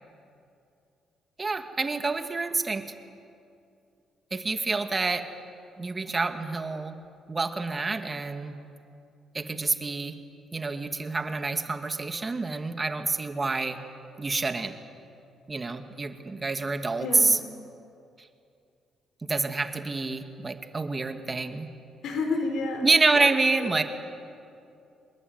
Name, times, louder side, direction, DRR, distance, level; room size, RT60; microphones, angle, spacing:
voice 1, 1.4-2.8 4.3-5.2 5.8-6.9 7.3-8.6 9.3-10.2 10.5-13.8 14.2-14.7 15.5-17.4 19.3-21.7 22.8-23.8, right 3 dB, 25° right, 7 dB, 2.1 m, -27 dB
voice 2, 22.0-23.3 23.6-23.8, left 3 dB, 75° left, 6 dB, 4.3 m, -30 dB
25.5 x 21.0 x 9.6 m, 2.5 s
cardioid pair, 90°, 0 cm